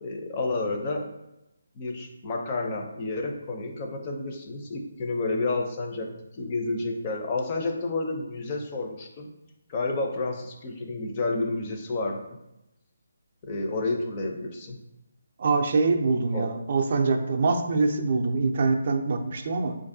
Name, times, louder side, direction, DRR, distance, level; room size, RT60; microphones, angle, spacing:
voice 1, 0.0-1.1 1.7-9.3 9.7-12.2 13.4-14.8 16.3-16.5, left 2 dB, 30° left, 2 dB, 0.5 m, -30 dB
voice 2, 15.4-19.8, right 4 dB, 50° right, 4 dB, 0.4 m, -24 dB
4.6 x 2.5 x 2.6 m, 0.89 s
hypercardioid pair, 165°, 0 cm